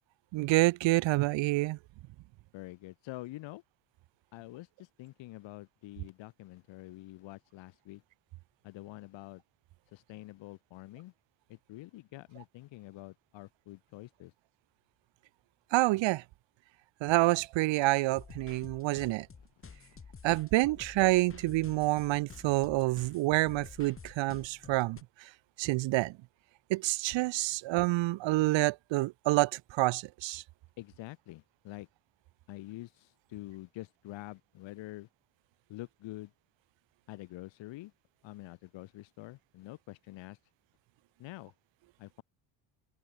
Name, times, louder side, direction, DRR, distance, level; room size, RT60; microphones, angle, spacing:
voice 1, 0.3-1.8 15.7-16.2 17.0-19.3 20.2-25.0 25.6-26.1 26.7-30.4, right 19 dB, 70° right, 0.7 m, -28 dB
voice 2, 2.5-3.6 4.3-8.0 8.6-9.4 9.9-11.1 11.5-14.3 30.8-31.9 32.5-35.1 35.7-36.3 37.1-37.9 38.2-40.4 41.2-41.5 42.0-42.2, left 17 dB, 70° left, 1.1 m, -46 dB
sound 1, 18.1-25.0, left 5 dB, 25° left, 7.4 m, -50 dB
open air
cardioid pair, 140°, 47 cm